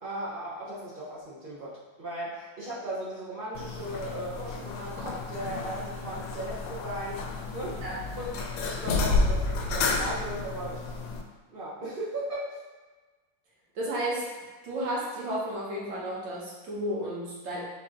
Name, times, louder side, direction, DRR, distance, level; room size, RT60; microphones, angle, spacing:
voice 1, 0.0-7.2 7.5-7.8 8.2-10.8 11.5-12.6, right 1 dB, 50° right, -7 dB, 0.6 m, -37 dB
sound 1, 3.5-11.2, left 3 dB, 80° left, 1.2 m, -31 dB
voice 2, 13.8-14.3 14.6-17.6, right 1 dB, 75° right, -6 dB, 1.9 m, -32 dB
4.4 x 2.9 x 3.7 m, 1.3 s
omnidirectional pair, 2.0 m